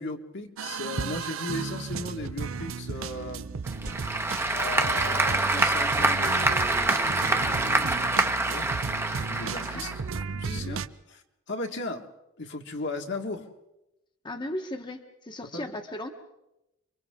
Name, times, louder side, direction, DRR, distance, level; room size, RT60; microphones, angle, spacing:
voice 1, 0.0-3.5 4.5-8.7 9.3-10.0 10.3-10.8 11.1-12.1 12.4-13.5 15.5-15.7, left 2 dB, 60° left, 3 dB, 1.6 m, -37 dB
sound 1, 0.6-10.9, right 5 dB, 80° right, 0.6 m, -34 dB
Applause / Crowd, 3.6-10.2, right 2 dB, 10° right, 0.9 m, -26 dB
voice 2, 14.2-16.1, left 1 dB, 25° left, 4 dB, 1.1 m, -36 dB
30.0 x 24.0 x 3.7 m, 0.91 s
head